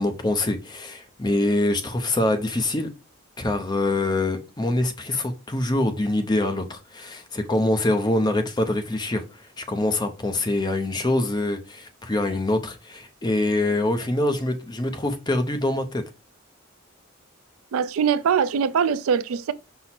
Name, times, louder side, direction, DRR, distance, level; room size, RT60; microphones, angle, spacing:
voice 1, 0.0-2.9 3.4-16.0, left 2 dB, 20° left, 0.5 m, -24 dB
voice 2, 17.7-19.5, right 7 dB, 85° right, 0.4 m, -22 dB
5.6 x 2.0 x 4.2 m
head